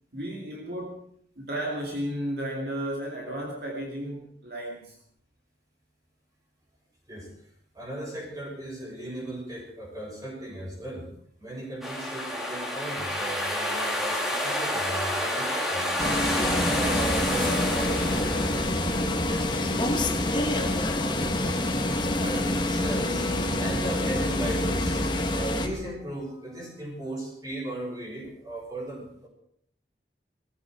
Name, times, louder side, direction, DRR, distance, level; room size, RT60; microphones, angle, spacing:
voice 1, 0.1-1.0 1.4-5.0, right 1 dB, 60° right, -1 dB, 2.5 m, -33 dB
voice 2, 7.7-11.1 11.4-21.7 22.2-23.3 23.6-29.3, right 1 dB, 20° right, -2 dB, 6.5 m, -37 dB
sound 1, 11.8-19.1, left 1 dB, ahead, 2.6 m, -29 dB
sound 2, 16.0-25.7, left 1 dB, 25° left, 1.5 m, -26 dB
20.0 x 15.0 x 4.8 m, 0.65 s
head